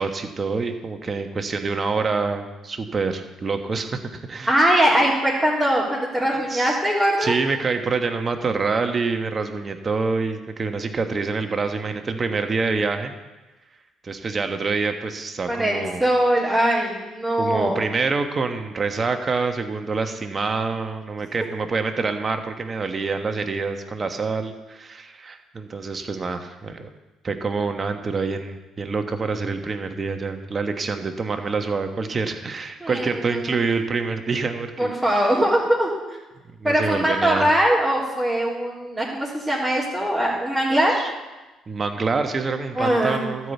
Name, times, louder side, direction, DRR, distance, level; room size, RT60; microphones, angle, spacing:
voice 1, 0.0-4.8 6.3-6.8 7.2-13.1 14.0-16.0 17.4-26.9 27.2-35.2 36.6-37.5 40.9-41.1 41.7-43.5, right 4 dB, 40° right, 6 dB, 1.3 m, -26 dB
voice 2, 4.5-7.3 15.5-17.8 32.8-33.6 34.8-36.2 36.6-40.9 42.8-43.2, right 1 dB, 10° right, -8 dB, 3.6 m, -21 dB
12.5 x 5.9 x 8.3 m, 1.1 s
hypercardioid pair, 50°, 0 cm